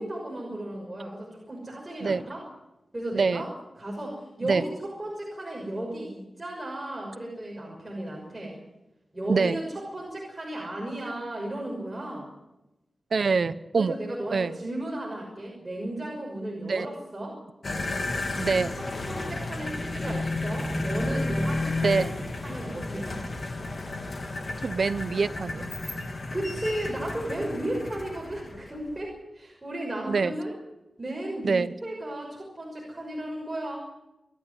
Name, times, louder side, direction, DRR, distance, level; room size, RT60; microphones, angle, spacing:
voice 1, 0.0-2.4 2.9-3.5 3.8-8.6 9.1-12.3 13.8-17.4 19.1-22.1 22.4-23.2 26.3-30.5 31.0-33.8, right 1 dB, 20° right, -2 dB, 6.1 m, -34 dB
voice 2, 3.1-3.4 4.4-4.6 9.3-9.6 13.1-14.0 14.3-14.5 16.6-16.9 18.4-18.7 21.8-22.1 24.6-25.7 30.1-30.3 31.4-31.7, right 4 dB, 65° right, 13 dB, 1.0 m, -25 dB
sound 1, 17.6-29.0, left 2 dB, 45° left, 3.0 m, -32 dB
29.0 x 11.5 x 9.5 m, 0.97 s
wide cardioid pair, 125°, 0 cm